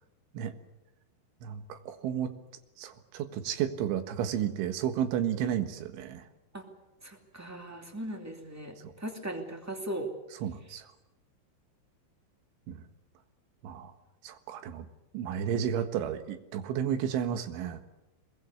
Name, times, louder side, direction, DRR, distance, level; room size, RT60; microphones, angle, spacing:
voice 1, 1.4-2.3 2.8-6.2 8.8-8.9 10.4-10.8 12.7-12.8 13.6-13.9 14.2-14.9 15.1-17.8, right 9 dB, 80° right, 9 dB, 3.9 m, -32 dB
voice 2, 7.0-10.1, right 1 dB, 10° right, 4 dB, 1.0 m, -38 dB
24.0 x 21.5 x 8.2 m, 0.97 s
omnidirectional pair, 5.4 m